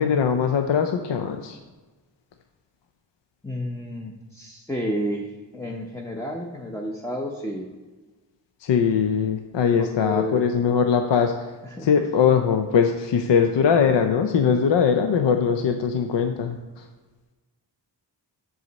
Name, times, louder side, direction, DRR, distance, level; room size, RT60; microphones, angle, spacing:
voice 1, 0.0-1.6 8.6-11.3 11.8-16.8, left 7 dB, 70° left, 6 dB, 0.5 m, -21 dB
voice 2, 3.4-7.7 9.8-10.4 11.6-12.1, equal, 5° left, 0 dB, 0.6 m, -31 dB
6.3 x 4.9 x 4.1 m, 1.3 s
cardioid pair, 55°, 45 cm